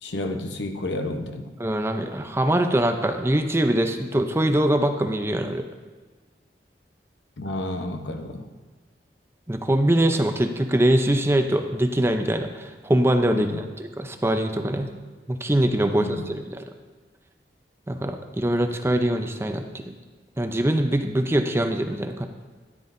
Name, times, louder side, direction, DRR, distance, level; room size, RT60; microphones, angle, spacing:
voice 1, 0.0-1.5 7.4-8.5 13.3-13.7 15.9-16.4, left 1 dB, 85° left, 6 dB, 0.9 m, -31 dB
voice 2, 1.6-5.6 9.5-14.9 15.3-16.7 17.9-19.9 20.4-22.3, right 1 dB, 15° right, 6 dB, 0.6 m, -23 dB
13.5 x 10.0 x 2.6 m, 1.3 s
head